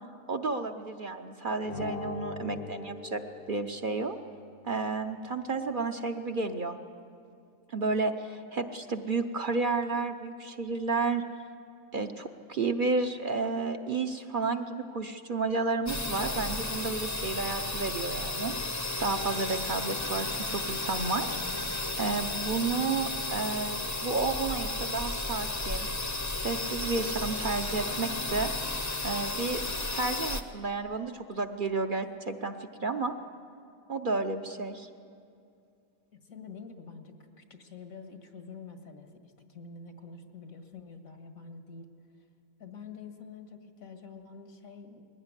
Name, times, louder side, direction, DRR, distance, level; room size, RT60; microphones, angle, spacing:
voice 1, 0.3-3.2 3.5-4.2 4.6-6.8 7.7-11.2 11.9-18.5 19.0-21.3 22.0-25.9 26.4-28.5 29.0-29.6 29.9-32.5 32.8-33.1 33.9-34.9, right 3 dB, 45° right, 6 dB, 0.8 m, -31 dB
sound 1, 1.6-4.3, left 5 dB, 50° left, 0.8 m, -41 dB
sound 2, 15.9-30.4, left 2 dB, 15° left, 0.7 m, -33 dB
voice 2, 36.1-41.9 42.6-45.0, left 5 dB, 80° left, 5 dB, 2.1 m, -47 dB
20.5 x 16.0 x 9.8 m, 2.4 s
omnidirectional pair, 1.4 m